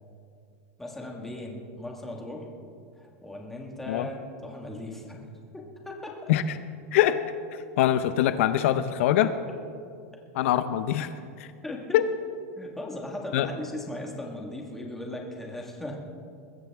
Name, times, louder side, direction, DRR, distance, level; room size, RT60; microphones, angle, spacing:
voice 1, 0.8-2.5 2.9-5.2 5.5-6.3 11.6-12.0 12.5-16.0, left 1 dB, 5° left, -1 dB, 1.7 m, -38 dB
voice 2, 7.5-9.3 10.3-11.1 11.9-12.0 13.3-13.5, left 12 dB, 65° left, 11 dB, 0.6 m, -23 dB
21.5 x 15.0 x 3.5 m, 2.3 s
supercardioid pair, 175°, 8 cm